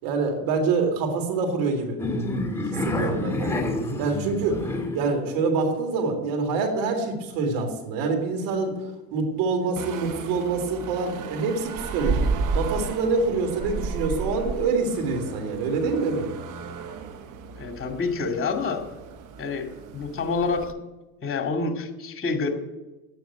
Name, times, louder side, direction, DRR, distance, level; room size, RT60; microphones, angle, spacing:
voice 1, 0.0-2.0 2.8-3.6 4.0-4.6 4.9-8.8 9.1-12.3 12.5-16.3, right 4 dB, 65° right, 3 dB, 3.5 m, -25 dB
sound 1, 2.0-5.1, left 2 dB, 5° left, 2.4 m, -28 dB
sound 2, 9.8-20.7, right 4 dB, 45° right, 1.3 m, -33 dB
voice 2, 17.5-18.8 19.4-20.7 21.2-22.5, left 4 dB, 30° left, 4 dB, 2.5 m, -27 dB
9.3 x 9.3 x 9.2 m, 1.1 s
hypercardioid pair, 80°, 43 cm